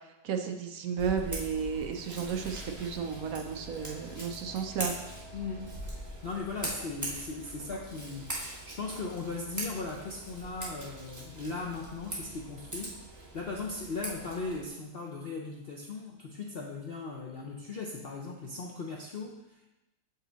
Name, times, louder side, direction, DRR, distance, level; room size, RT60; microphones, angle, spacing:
voice 1, 0.2-4.9, right 6 dB, 65° right, 5 dB, 0.9 m, -33 dB
Scissors, 1.0-14.7, right 1 dB, 10° right, 1.2 m, -41 dB
voice 2, 5.3-5.7 6.0-19.7, left 3 dB, 75° left, -1 dB, 0.5 m, -38 dB
6.5 x 5.5 x 3.9 m, 0.95 s
omnidirectional pair, 1.9 m